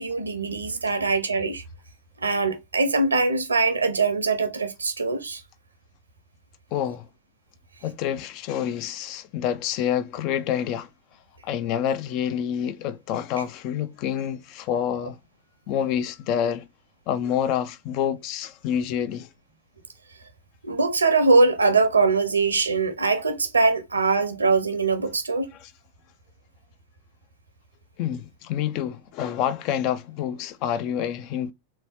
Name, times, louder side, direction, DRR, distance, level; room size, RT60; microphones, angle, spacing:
voice 1, 0.0-1.6 2.2-5.4 20.6-25.5, right 3 dB, 75° right, 0.7 m, -22 dB
voice 2, 6.7-7.1 7.8-10.9 11.4-15.2 15.7-16.7 17.1-19.3 25.5-25.7 28.0-31.5, left 9 dB, 40° left, 0.4 m, -27 dB
3.3 x 2.9 x 2.7 m
figure-of-eight pair, 90°, 0 cm